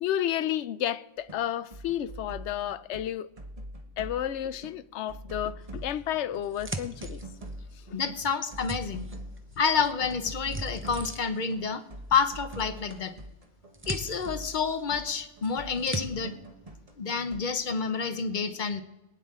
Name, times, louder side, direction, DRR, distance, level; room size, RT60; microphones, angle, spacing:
voice 1, 0.0-3.3 4.0-7.2 7.8-8.0, left 11 dB, 75° left, 0.9 m, -31 dB
sound 1, 1.2-1.4 1.7-3.1 3.4-4.8 5.1-17.4, right 1 dB, 30° right, 1.2 m, -43 dB
sound 2, 5.9-7.7 8.2-9.6 9.8-11.5 12.5-13.1 13.4-15.1 15.4-16.0, right 2 dB, 15° right, 0.5 m, -40 dB
voice 2, 7.9-9.1 9.6-11.8 12.1-13.1 13.9-16.4 17.0-18.8, left 5 dB, 45° left, 1.0 m, -29 dB
23.0 x 9.1 x 3.7 m
omnidirectional pair, 1.2 m